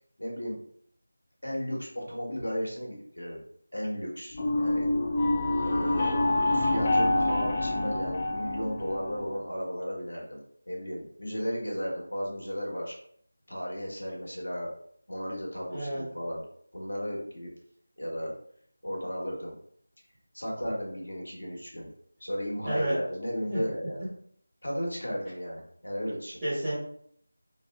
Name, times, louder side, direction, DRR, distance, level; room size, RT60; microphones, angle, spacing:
voice 1, 0.2-0.6 1.4-3.4 3.7-4.9 5.6-6.2 6.5-12.9 13.5-14.7 15.1-16.4 16.7-17.5 18.0-18.3 18.8-19.5 20.3-21.9 22.2-24.1 24.6-26.4, equal, 80° left, -3 dB, 1.2 m, -34 dB
sound 1, 4.3-9.4, left 2 dB, 25° left, 0.5 m, -27 dB
voice 2, 15.7-16.0 22.6-22.9 23.5-23.6 26.4-26.7, right 1 dB, 15° right, -12 dB, 1.2 m, -29 dB
2.9 x 2.6 x 2.3 m, 0.64 s
figure-of-eight pair, 170°, 0 cm